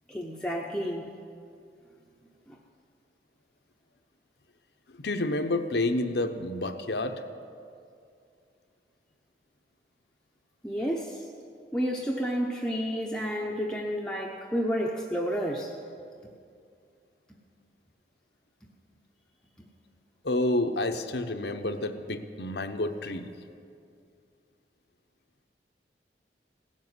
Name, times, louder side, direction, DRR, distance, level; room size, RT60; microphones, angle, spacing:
voice 1, 0.1-1.0 10.6-11.2 11.7-15.7, equal, 5° left, -2 dB, 0.8 m, -30 dB
voice 2, 5.0-7.2 20.2-23.3, left 2 dB, 70° left, 7 dB, 0.9 m, -29 dB
17.5 x 7.5 x 9.5 m, 2.4 s
head